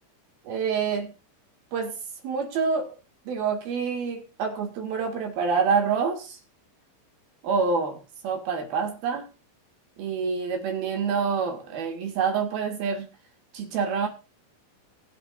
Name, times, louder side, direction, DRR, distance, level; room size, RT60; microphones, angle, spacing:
voice 1, 0.4-1.1 1.7-2.0 2.2-3.0 3.2-6.4 7.4-9.3 10.0-13.1 13.5-14.1, right 5 dB, 60° right, 3 dB, 3.4 m, -27 dB
22.5 x 7.9 x 2.5 m, 0.31 s
omnidirectional pair, 5.5 m